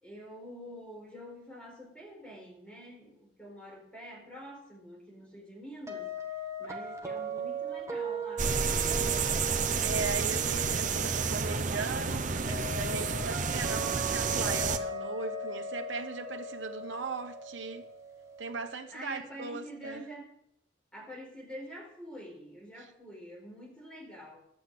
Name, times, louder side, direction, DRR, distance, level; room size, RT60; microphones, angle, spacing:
voice 1, 0.0-6.1 6.6-9.1 18.9-20.3 20.9-24.4, equal, 5° left, 4.4 m, -46 dB
sound 1, 5.9-18.7, right 2 dB, 15° right, 1.5 m, -39 dB
sound 2, 8.4-14.8, right 5 dB, 45° right, 0.9 m, -30 dB
voice 2, 9.8-17.9 18.4-20.0, right 3 dB, 90° right, 1.2 m, -38 dB
12.0 x 8.4 x 7.8 m
head